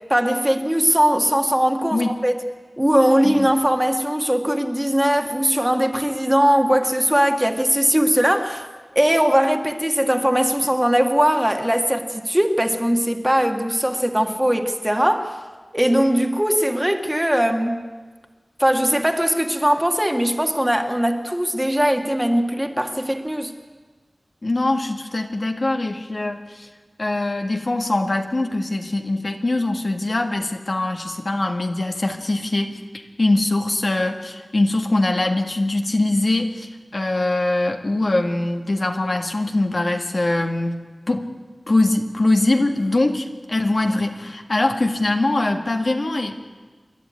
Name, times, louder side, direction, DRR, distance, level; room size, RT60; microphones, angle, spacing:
voice 1, 0.1-2.4 2.8-8.7 8.9-15.4 15.7-17.9 18.6-23.5, equal, 10° right, 1.7 m, -20 dB
voice 2, 24.4-26.7 27.0-40.7 41.1-41.3 41.7-46.4, left 2 dB, 60° left, 1.7 m, -22 dB
27.5 x 11.5 x 9.4 m
wide cardioid pair, 60°, 0 cm